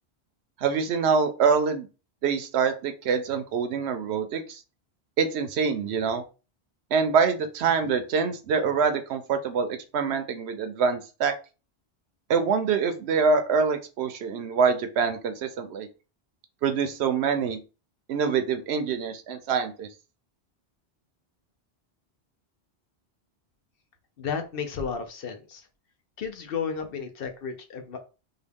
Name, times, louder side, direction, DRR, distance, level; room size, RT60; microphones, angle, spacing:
voice 1, 0.6-1.9 2.2-4.6 5.2-6.2 6.9-11.3 12.3-15.9 16.6-17.6 18.1-19.9, right 5 dB, 80° right, 8 dB, 0.9 m, -25 dB
voice 2, 24.2-25.7 26.2-28.1, left 6 dB, 65° left, 5 dB, 0.9 m, -33 dB
3.7 x 2.3 x 3.5 m, 0.32 s
omnidirectional pair, 1.1 m